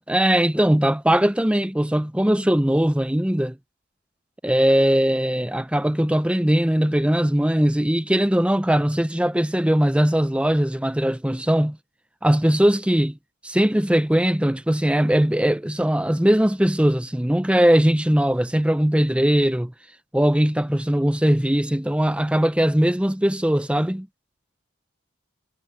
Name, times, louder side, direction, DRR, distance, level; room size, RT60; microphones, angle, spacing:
voice 1, 0.0-3.6 4.4-11.8 12.2-13.2 13.4-19.7 20.1-24.1, equal, 5° right, 0.6 m, -20 dB
head